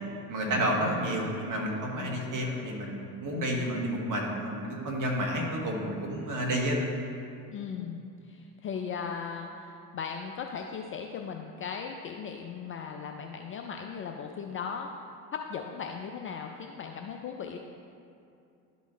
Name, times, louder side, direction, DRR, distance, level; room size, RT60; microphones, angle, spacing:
voice 1, 0.3-6.8, equal, 40° right, -1 dB, 1.7 m, -30 dB
voice 2, 2.0-2.3 7.5-14.9 15.3-17.6, left 6 dB, 30° left, 2 dB, 0.4 m, -38 dB
11.5 x 4.1 x 3.1 m, 2.6 s
hypercardioid pair, 75°, 48 cm